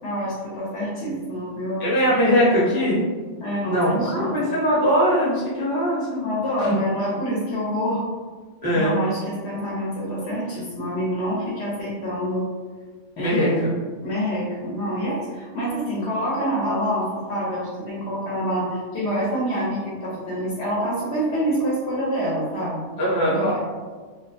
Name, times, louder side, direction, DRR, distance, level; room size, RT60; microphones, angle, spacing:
voice 1, 0.0-1.9 3.4-4.4 6.2-8.1 8.7-12.5 13.2-13.7 14.0-22.8 23.2-23.6, equal, 65° left, -6 dB, 0.8 m, -26 dB
voice 2, 1.8-3.0 3.7-6.3 6.6-6.7 8.6-9.0 13.2-13.7 23.0-23.5, equal, 20° left, -8 dB, 0.7 m, -21 dB
2.3 x 2.1 x 2.5 m, 1.5 s
omnidirectional pair, 1.3 m